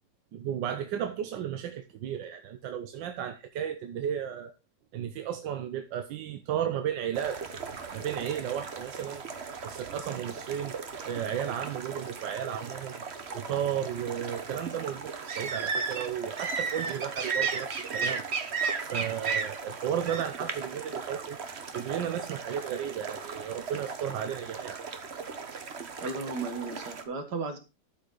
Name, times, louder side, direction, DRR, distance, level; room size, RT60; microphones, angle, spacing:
voice 1, 0.3-4.5 4.9-7.4 7.9-9.2 9.6-10.8 11.1-13.0 13.3-18.2 18.8-21.4 21.7-24.8, right 9 dB, 85° right, 1.4 m, -34 dB
sound 1, 7.1-27.0, right 5 dB, 40° right, 1.2 m, -36 dB
voice 2, 26.0-27.6, right 3 dB, 65° right, 2.3 m, -35 dB
12.0 x 5.6 x 3.9 m
omnidirectional pair, 1.9 m